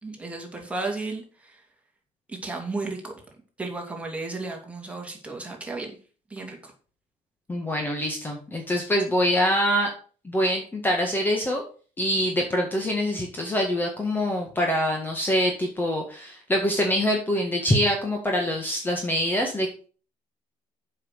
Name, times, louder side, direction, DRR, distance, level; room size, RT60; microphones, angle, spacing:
voice 1, 0.0-1.6 2.3-3.1 3.6-5.9 6.3-6.7, right 3 dB, 10° right, 1 dB, 2.7 m, -34 dB
voice 2, 7.5-9.9 10.2-11.6 12.0-19.9, equal, 15° left, 2 dB, 1.8 m, -25 dB
7.4 x 6.0 x 6.5 m, 0.39 s
cardioid pair, 130°, 13 cm